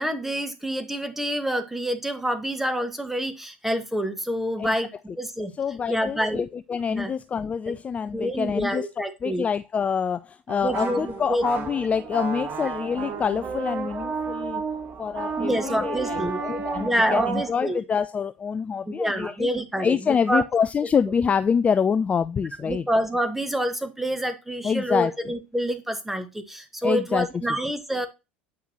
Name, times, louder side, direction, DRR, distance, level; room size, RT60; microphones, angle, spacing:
voice 1, 0.0-4.9 5.2-5.5 5.9-6.4 6.9-7.1 8.1-9.5 10.6-11.4 15.4-16.4 16.8-17.8 19.0-20.4 22.7-28.1, equal, 5° right, 1.6 m, -27 dB
voice 2, 5.6-8.9 9.2-14.6 15.0-19.5 19.8-22.8 24.6-25.1 26.8-27.3, left 6 dB, 25° left, 0.4 m, -26 dB
sound 1, 10.5-17.5, right 5 dB, 35° right, 1.8 m, -31 dB
8.7 x 5.8 x 3.0 m
figure-of-eight pair, 75°, 6 cm